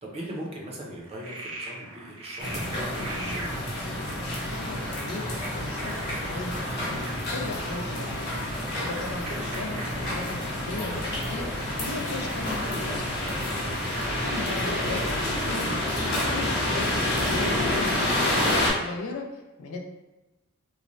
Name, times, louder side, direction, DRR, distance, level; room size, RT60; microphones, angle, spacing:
voice 1, 0.0-3.5 14.3-14.7, right 1 dB, 30° right, -2 dB, 0.5 m, -40 dB
Frog, 1.0-18.4, right 2 dB, 75° right, 0.7 m, -43 dB
sound 1, 2.4-18.7, left 1 dB, 50° left, 0.9 m, -29 dB
voice 2, 4.5-7.0 7.3-8.3 8.8-13.4 13.8-19.8, left 3 dB, 85° left, 1 dB, 0.4 m, -37 dB
3.1 x 2.1 x 2.5 m, 1.1 s
head